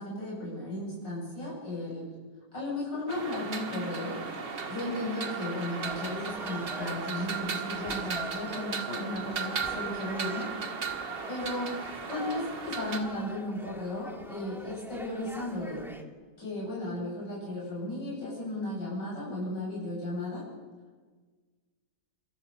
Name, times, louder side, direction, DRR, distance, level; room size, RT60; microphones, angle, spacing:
voice 1, 0.0-2.1 2.5-4.2 4.7-10.5 11.3-15.8 16.4-20.4, left 1 dB, 85° left, -5 dB, 8.6 m, -35 dB
sound 1, 3.1-13.0, right 5 dB, 85° right, 3.1 m, -36 dB
sound 2, 5.8-16.0, equal, ahead, 2.1 m, -45 dB
27.5 x 26.0 x 7.1 m, 1.4 s
omnidirectional pair, 1.9 m